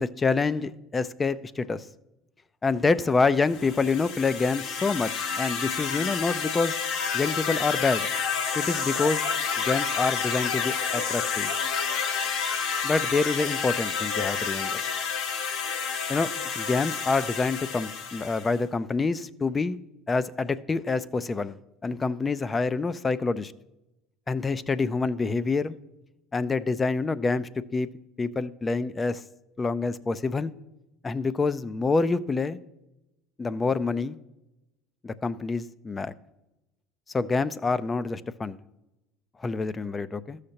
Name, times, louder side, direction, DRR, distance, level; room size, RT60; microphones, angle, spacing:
voice 1, 0.0-1.8 2.6-6.8 7.1-8.1 8.5-9.2 9.6-11.5 12.8-14.8 16.1-19.8 20.1-23.5 24.3-25.7 26.3-27.9 28.2-29.2 29.6-30.5 31.0-32.6 33.4-34.2 35.0-36.1 37.1-38.6 39.4-40.4, left 4 dB, 25° left, 0.4 m, -27 dB
sound 1, 3.5-18.6, left 6 dB, 70° left, 0.9 m, -29 dB
13.5 x 6.5 x 2.8 m
supercardioid pair, 85°, 0 cm